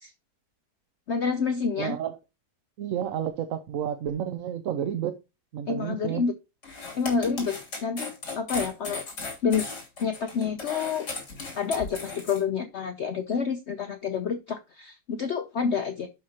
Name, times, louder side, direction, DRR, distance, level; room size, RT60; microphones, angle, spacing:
voice 1, 1.1-2.0 5.7-6.3 7.0-9.0 9.4-9.6 10.0-11.1 11.5-16.1, left 6 dB, 60° left, 0.7 m, -28 dB
voice 2, 1.8-2.2 2.8-5.2 5.5-6.2, right 9 dB, 65° right, 0.9 m, -31 dB
sound 1, 6.6-12.4, left 3 dB, 75° left, 3.6 m, -36 dB
11.5 x 4.9 x 2.9 m
omnidirectional pair, 1.8 m